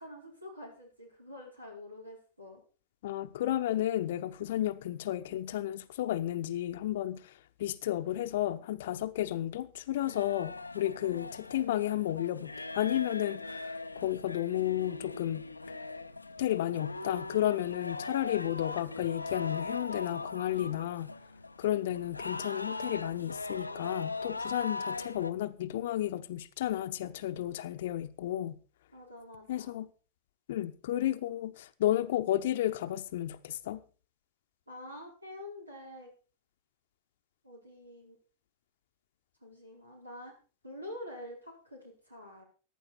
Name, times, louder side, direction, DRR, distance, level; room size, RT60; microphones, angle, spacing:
voice 1, 0.0-2.6 11.0-11.3 28.9-29.7 34.7-36.1 37.4-38.2 39.4-40.4 40.6-42.4, left 1 dB, 85° right, 4.9 m, -47 dB
voice 2, 3.0-15.5 16.4-21.1 21.6-28.6 29.5-29.9 30.5-33.8, left 13 dB, 55° left, 0.8 m, -32 dB
sound 1, 10.0-25.3, left 3 dB, 80° left, 0.6 m, -40 dB
15.0 x 11.0 x 4.3 m
figure-of-eight pair, 90°, 0 cm